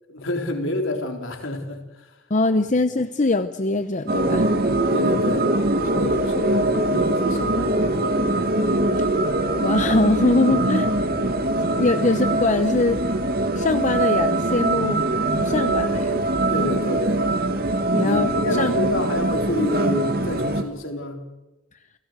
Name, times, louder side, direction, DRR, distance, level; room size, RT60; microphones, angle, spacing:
voice 1, 0.1-2.1 4.9-5.5 5.8-8.3 10.5-10.6 11.9-12.0 16.5-17.3 18.0-21.2, left 2 dB, 65° left, 3.8 m, -29 dB
voice 2, 2.3-4.6 9.0-9.1 9.6-10.9 11.6-13.0 13.6-15.1 15.4-16.2 17.9-18.7, left 2 dB, 35° left, 0.8 m, -22 dB
sound 1, 4.1-20.6, right 1 dB, 45° right, 2.2 m, -22 dB
29.0 x 17.5 x 8.1 m
head